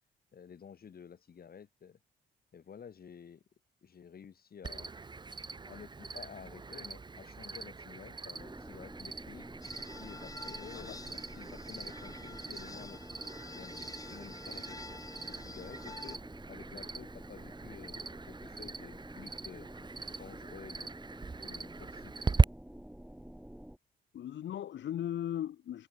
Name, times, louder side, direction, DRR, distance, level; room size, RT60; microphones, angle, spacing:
voice 1, 0.3-2.0 2.5-3.4 3.8-4.9 5.6-9.5 10.0-14.8 15.3-16.2 16.5-20.9 21.4-22.1, left 7 dB, 50° left, 5.9 m, -51 dB
Cricket, 4.6-22.4, right 4 dB, 20° right, 1.1 m, -38 dB
sound 1, 8.3-23.8, right 1 dB, 5° right, 3.7 m, -50 dB
sound 2, 9.6-16.2, left 3 dB, 15° left, 0.9 m, -49 dB
voice 2, 24.1-25.9, left 11 dB, 65° left, 1.6 m, -37 dB
cardioid pair, 90°, 20 cm